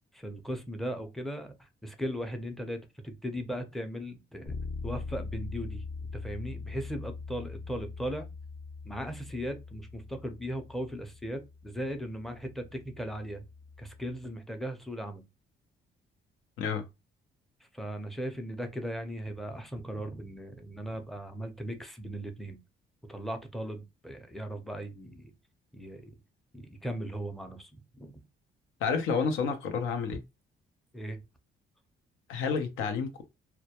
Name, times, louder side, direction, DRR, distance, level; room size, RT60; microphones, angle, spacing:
voice 1, 0.1-4.6 4.8-5.9 6.1-8.3 8.8-13.4 13.8-15.2 17.7-22.6 23.1-25.3 25.7-26.1 26.5-28.1 30.9-31.2, equal, ahead, 0.5 m, -38 dB
Bass guitar, 4.5-14.3, left 4 dB, 45° left, 0.7 m, -42 dB
voice 2, 28.8-30.2 32.3-33.2, left 5 dB, 85° left, 0.6 m, -30 dB
2.2 x 2.1 x 2.8 m
cardioid pair, 90°, 20 cm